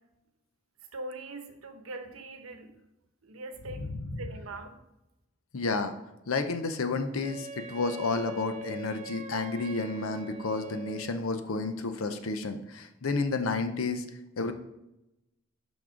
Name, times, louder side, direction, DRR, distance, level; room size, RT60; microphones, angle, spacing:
voice 1, 0.9-2.7 3.2-3.8 4.2-4.7, right 2 dB, 85° right, 6 dB, 0.9 m, -41 dB
voice 2, 3.8-4.3 5.5-5.9 6.3-14.0 14.4-14.5, left 3 dB, 90° left, 8 dB, 0.7 m, -31 dB
Wind instrument woodwind instrument, 7.2-11.3, right 1 dB, 35° right, 0.4 m, -43 dB
6.1 x 5.3 x 5.0 m, 0.91 s
head